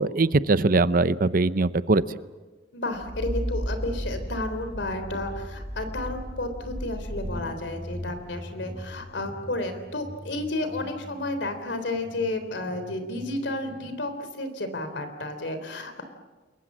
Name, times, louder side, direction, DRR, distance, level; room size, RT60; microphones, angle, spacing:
voice 1, 0.0-2.0, right 3 dB, 50° right, 15 dB, 0.7 m, -21 dB
voice 2, 2.7-16.0, left 2 dB, 70° left, 8 dB, 3.6 m, -32 dB
sound 1, 2.9-13.9, equal, 5° right, 1.9 m, -37 dB
29.5 x 22.0 x 7.5 m, 1.3 s
head